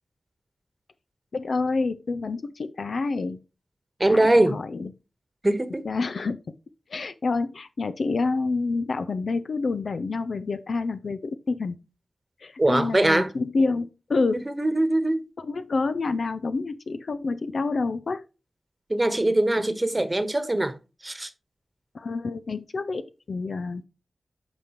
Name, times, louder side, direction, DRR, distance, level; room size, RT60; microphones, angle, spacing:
voice 1, 1.3-3.4 4.1-4.9 5.8-6.4 6.9-11.8 12.4-14.4 15.4-18.2 21.9-23.8, left 3 dB, 70° left, 0.4 m, -28 dB
voice 2, 4.0-4.6 5.4-5.8 12.6-13.3 14.5-15.2 18.9-20.8 21.0-21.3, right 1 dB, 30° right, 1.1 m, -22 dB
8.8 x 5.1 x 3.0 m
cardioid pair, 40°, 0 cm